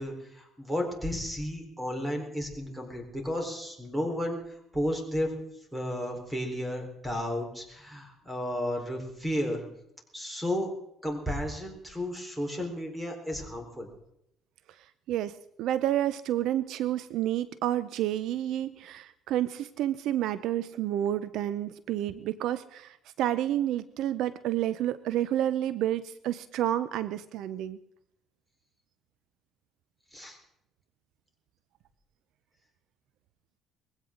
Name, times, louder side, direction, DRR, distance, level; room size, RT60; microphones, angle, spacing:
voice 1, 0.0-4.4 4.7-5.3 5.7-9.6 10.1-10.7 11.0-13.9 30.1-30.4, equal, 10° right, 2 dB, 4.2 m, -33 dB
voice 2, 15.1-27.8, right 12 dB, 75° right, 15 dB, 0.6 m, -30 dB
21.0 x 16.0 x 3.8 m, 0.81 s
cardioid pair, 105°, 0 cm